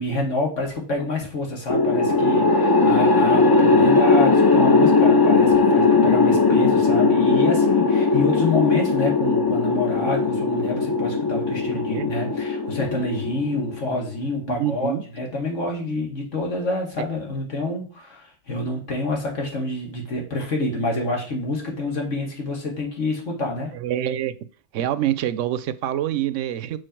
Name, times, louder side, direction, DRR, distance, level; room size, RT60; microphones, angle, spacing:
voice 1, 0.0-23.7, left 2 dB, 90° left, 2.4 m, -27 dB
sound 1, 1.7-14.0, left 3 dB, 35° left, 0.4 m, -18 dB
voice 2, 11.6-12.1 14.5-15.0 23.7-24.4 24.7-26.8, right 12 dB, 85° right, 0.9 m, -26 dB
6.3 x 4.7 x 4.5 m
omnidirectional pair, 1.2 m